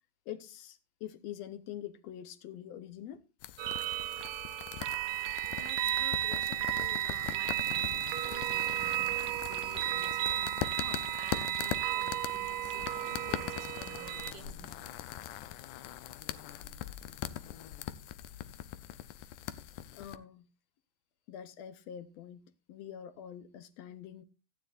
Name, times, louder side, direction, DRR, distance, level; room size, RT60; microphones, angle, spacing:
voice 1, 0.3-3.2 19.9-20.5 21.3-24.2, left 10 dB, 70° left, 1.9 m, -45 dB
sound 1, 3.4-20.2, left 12 dB, 85° left, 2.2 m, -41 dB
sound 2, 3.6-14.3, right 13 dB, 75° right, 1.9 m, -34 dB
voice 2, 5.5-8.0 8.2-14.9, right 5 dB, 40° right, 1.6 m, -51 dB
16.5 x 9.8 x 2.5 m
omnidirectional pair, 3.4 m